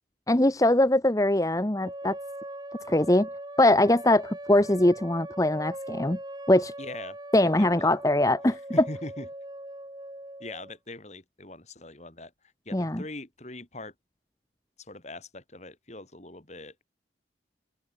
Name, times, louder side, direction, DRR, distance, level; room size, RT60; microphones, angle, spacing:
voice 1, 0.3-2.1 2.9-3.3 3.6-6.2 6.5-6.7 7.3-8.6 12.7-13.0, left 1 dB, 20° left, 1.1 m, -22 dB
sound 1, 1.8-10.8, right 1 dB, 25° right, 6.5 m, -41 dB
voice 2, 6.8-7.9 8.5-9.3 10.4-12.3 12.7-13.9 14.8-16.8, left 2 dB, 40° left, 3.6 m, -42 dB
open air
head